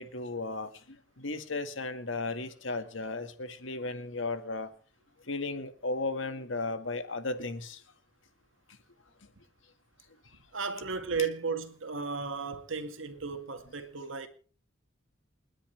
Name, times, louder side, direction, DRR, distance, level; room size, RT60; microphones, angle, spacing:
voice 1, 0.0-4.7 5.3-7.8, left 3 dB, 75° left, 1.8 m, -35 dB
voice 2, 10.5-14.3, right 5 dB, 85° right, 2.0 m, -34 dB
29.0 x 10.0 x 3.4 m
head